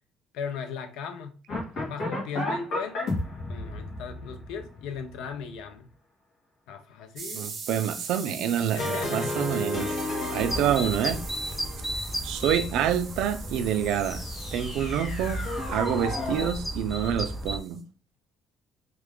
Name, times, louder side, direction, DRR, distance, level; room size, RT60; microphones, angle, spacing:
voice 1, 0.3-1.4 1.8-3.2 3.5-5.9 6.7-7.5 8.7-9.5 10.2-10.4, left 6 dB, 90° left, 0.5 m, -37 dB
sound 1, 1.5-5.6 8.8-12.5 13.5-16.5, left 2 dB, 45° left, 1.4 m, -33 dB
sound 2, 7.2-17.8, right 5 dB, 35° right, 0.7 m, -42 dB
voice 2, 7.3-10.0 10.3-11.2 12.2-14.2 14.5-15.4 15.7-17.8, right 9 dB, 80° right, 0.4 m, -27 dB
sound 3, 10.4-17.6, equal, ahead, 0.4 m, -34 dB
3.1 x 2.4 x 3.5 m
cardioid pair, 160°, 0 cm